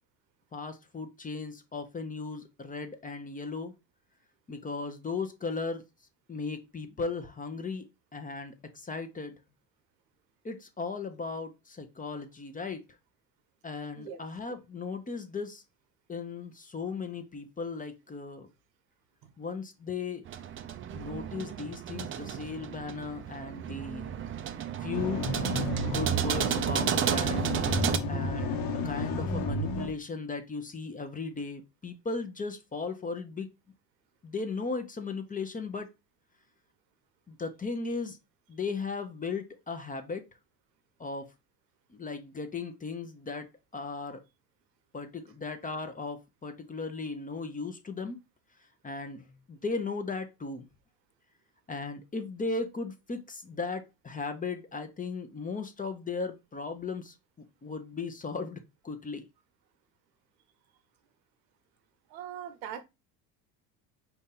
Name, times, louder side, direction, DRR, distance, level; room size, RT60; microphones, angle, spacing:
voice 1, 0.5-3.7 4.5-5.8 6.3-7.8 8.1-9.4 10.4-12.8 13.6-15.6 16.1-18.5 19.4-20.2 20.9-24.1 24.8-25.3 25.8-27.5 28.1-33.5 34.2-35.9 37.3-38.2 38.5-40.2 41.0-41.3 41.9-44.2 44.9-48.2 48.8-50.7 51.7-57.1 57.6-59.2, left 4 dB, 15° left, 0.6 m, -36 dB
sound 1, 20.3-28.0, right 9 dB, 30° right, 0.3 m, -32 dB
sound 2, 24.9-29.9, left 1 dB, 55° left, 1.2 m, -32 dB
voice 2, 62.1-62.8, right 9 dB, 85° right, 0.9 m, -41 dB
4.3 x 2.7 x 3.6 m
supercardioid pair, 90°, 48 cm